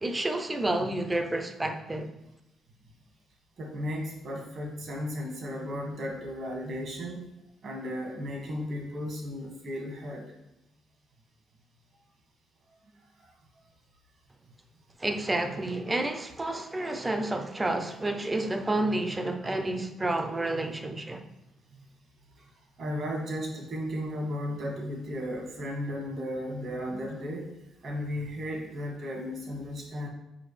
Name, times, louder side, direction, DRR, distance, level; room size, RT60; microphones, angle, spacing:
voice 1, 0.0-2.1 15.0-21.2, right 2 dB, 20° right, 0.6 m, -30 dB
voice 2, 3.6-7.2 7.6-10.3 13.2-13.3 22.4-22.5 22.8-27.5 27.8-30.1, equal, 60° right, 1.6 m, -35 dB
6.1 x 4.7 x 3.2 m
cardioid pair, 90°, 0 cm